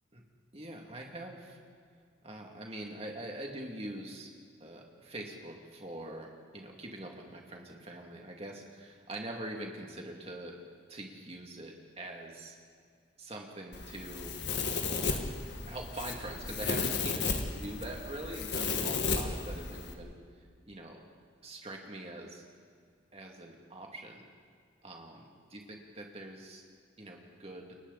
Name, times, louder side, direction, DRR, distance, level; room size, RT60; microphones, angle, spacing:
voice 1, 0.5-1.6 2.2-4.3 4.6-10.6 10.9-12.6 13.2-14.4 15.0-15.3 15.7-20.1 20.7-21.0 21.4-22.5 23.1-24.2 24.8-25.2 25.5-26.6 27.0-27.7, right 1 dB, 30° right, 1 dB, 2.5 m, -43 dB
Domestic sounds home sounds, 13.7-19.9, left 4 dB, 55° left, 1.7 m, -34 dB
29.5 x 23.0 x 4.2 m, 2.1 s
head